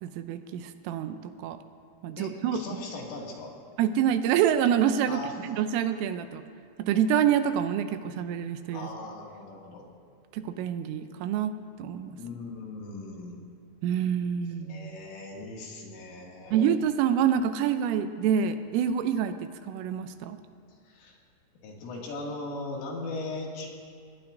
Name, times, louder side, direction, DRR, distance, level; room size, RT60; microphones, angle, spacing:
voice 1, 0.0-1.6 2.0-2.6 3.8-6.4 6.8-8.9 10.3-11.5 11.8-12.2 13.8-15.0 16.5-19.4 19.7-20.4, right 9 dB, 85° right, 9 dB, 3.2 m, -27 dB
voice 2, 2.2-3.5 5.1-5.5 8.7-9.8 12.2-13.5 14.6-16.7 20.8-21.2 21.6-23.7, left 2 dB, 75° left, -2 dB, 4.8 m, -39 dB
26.0 x 20.5 x 2.6 m, 2.2 s
omnidirectional pair, 5.9 m